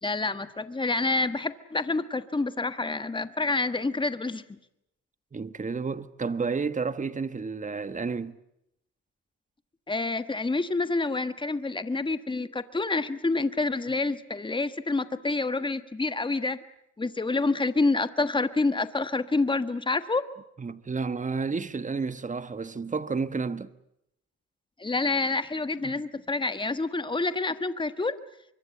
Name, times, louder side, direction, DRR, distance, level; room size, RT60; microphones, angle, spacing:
voice 1, 0.0-4.6 9.9-16.6 17.0-20.2 24.8-28.2, left 3 dB, 15° left, 1.4 m, -28 dB
voice 2, 5.3-8.4 20.6-23.7 25.8-26.0, right 4 dB, 25° right, 1.3 m, -31 dB
24.0 x 23.5 x 7.9 m
cardioid pair, 90°, 30 cm